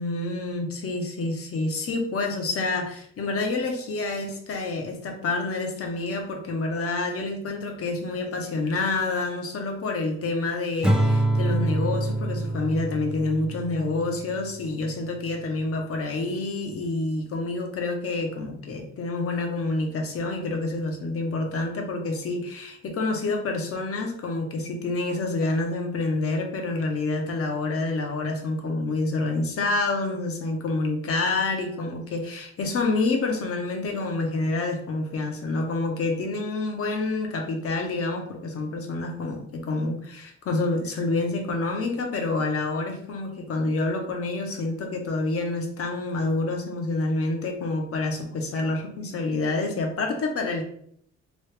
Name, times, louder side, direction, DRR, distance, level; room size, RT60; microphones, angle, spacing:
voice 1, 0.0-50.6, left 2 dB, 50° left, 3 dB, 0.8 m, -28 dB
Acoustic guitar / Strum, 10.8-14.2, right 1 dB, 5° right, 0.3 m, -25 dB
3.0 x 2.3 x 3.2 m, 0.67 s
cardioid pair, 90°, 30 cm